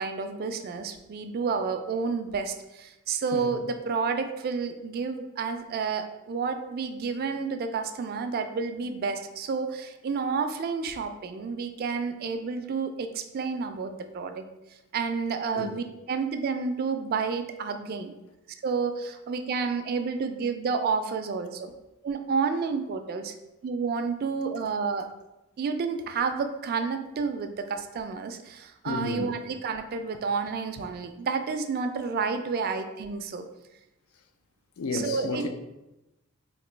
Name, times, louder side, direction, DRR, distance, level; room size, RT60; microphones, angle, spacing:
voice 1, 0.0-14.5 14.9-18.1 18.6-21.7 22.0-23.4 23.6-25.1 25.6-33.4 34.9-35.5, right 5 dB, 45° right, 0.3 m, -30 dB
voice 2, 28.8-29.3 34.8-35.5, left 3 dB, 75° left, 0.4 m, -32 dB
2.9 x 2.6 x 4.3 m
head